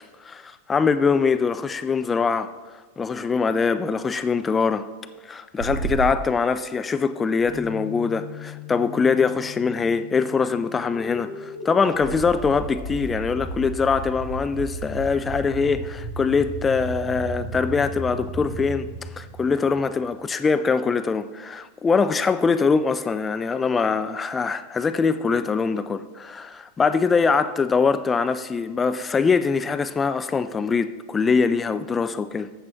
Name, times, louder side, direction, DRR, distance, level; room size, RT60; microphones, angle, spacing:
voice 1, 0.2-2.5 3.0-4.9 5.3-18.9 19.2-32.5, left 5 dB, 15° left, 0.3 m, -23 dB
sound 1, 5.6-6.2, right 5 dB, 60° right, 1.0 m, -27 dB
Bass guitar, 7.4-13.7, left 13 dB, 35° left, 2.8 m, -42 dB
sound 2, 10.8-20.1, right 1 dB, 20° right, 3.2 m, -34 dB
13.5 x 7.4 x 2.9 m
figure-of-eight pair, 90°, 0 cm